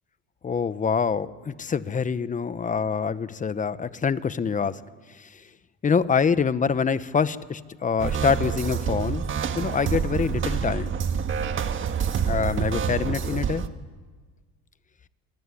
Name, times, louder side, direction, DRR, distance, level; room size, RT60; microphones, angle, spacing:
voice 1, 0.4-4.8 5.1-5.4 5.8-9.2 9.5-11.0 12.3-13.6, left 6 dB, 25° left, 14 dB, 1.0 m, -25 dB
sound 1, 8.0-13.7, right 7 dB, 40° right, 1.6 m, -27 dB
27.5 x 21.5 x 9.9 m, 1.4 s
cardioid pair, 120°, 32 cm